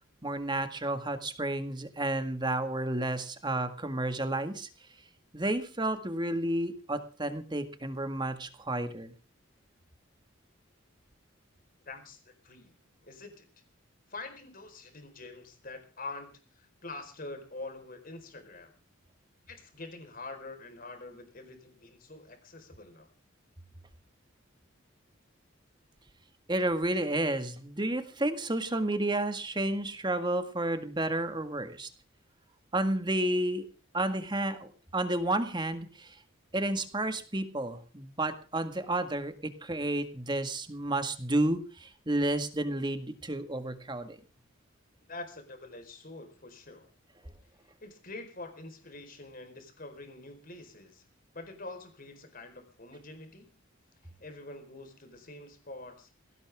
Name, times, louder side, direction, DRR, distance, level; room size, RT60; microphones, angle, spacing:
voice 1, 0.2-4.7 5.3-9.1 26.5-31.9 32.7-33.7 33.9-36.2 36.5-44.2, right 1 dB, 20° right, 9 dB, 1.8 m, -31 dB
voice 2, 11.9-12.7 13.0-13.5 14.1-18.8 19.5-23.1 45.1-46.9 47.8-51.0 51.3-53.5 54.2-56.1, left 2 dB, 45° left, 7 dB, 4.5 m, -45 dB
19.5 x 17.5 x 3.6 m, 0.37 s
head